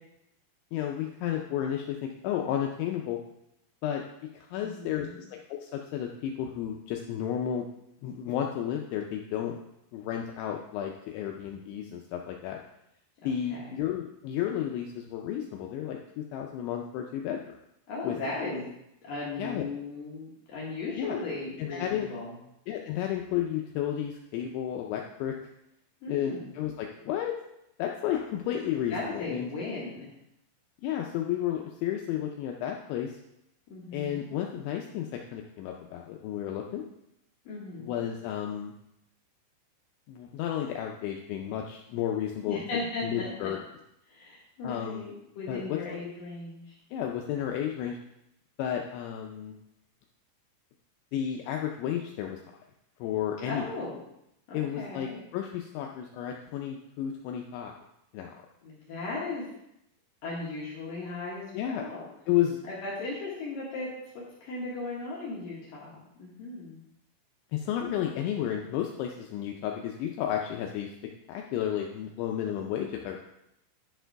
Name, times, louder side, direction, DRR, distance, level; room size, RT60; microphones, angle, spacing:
voice 1, 0.7-3.2 3.8-4.0 4.3-7.7 8.0-9.6 9.9-12.6 13.2-17.4 18.0-18.2 19.4-19.7 21.0-21.2 21.6-22.1 22.7-25.4 26.1-27.4 27.8-29.5 30.8-33.2 33.9-36.8 37.8-38.7 40.1-42.6 43.0-43.6 44.6-45.0 45.5-45.8 46.9-48.0 48.6-49.6 51.1-52.4 53.0-53.6 54.5-57.7 58.1-58.4 61.5-61.8 62.3-62.6 67.5-70.9 71.3-73.2, left 10 dB, 90° left, 2 dB, 2.6 m, -32 dB
voice 2, 4.6-5.2 13.2-13.7 17.9-18.7 19.0-22.3 26.0-26.5 28.9-30.1 33.7-34.3 37.5-38.0 42.5-43.6 44.1-46.8 53.4-54.0 54.5-55.2 58.6-59.5 60.2-62.0 62.7-66.8, left 3 dB, 70° left, -5 dB, 2.2 m, -37 dB
10.5 x 4.5 x 4.6 m, 0.82 s
omnidirectional pair, 5.9 m